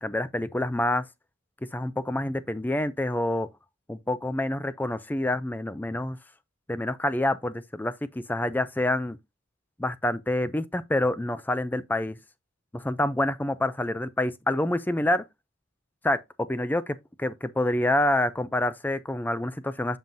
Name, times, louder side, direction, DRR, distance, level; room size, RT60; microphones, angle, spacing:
voice 1, 0.0-1.0 1.7-3.5 3.9-6.2 6.7-9.2 9.8-12.2 12.7-15.2 16.0-20.0, left 1 dB, 10° left, 0.3 m, -27 dB
7.5 x 5.4 x 2.6 m
head